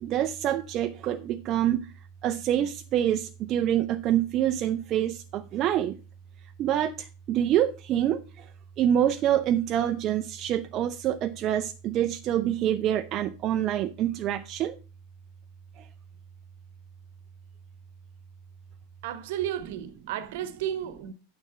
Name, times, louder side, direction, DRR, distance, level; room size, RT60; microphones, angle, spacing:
voice 1, 0.0-1.9 2.2-6.0 6.6-8.4 8.8-14.7, right 11 dB, 40° right, 0.6 m, -26 dB
voice 2, 19.0-21.1, right 10 dB, 60° right, 1.2 m, -33 dB
9.9 x 9.3 x 3.3 m
figure-of-eight pair, 85°, 0 cm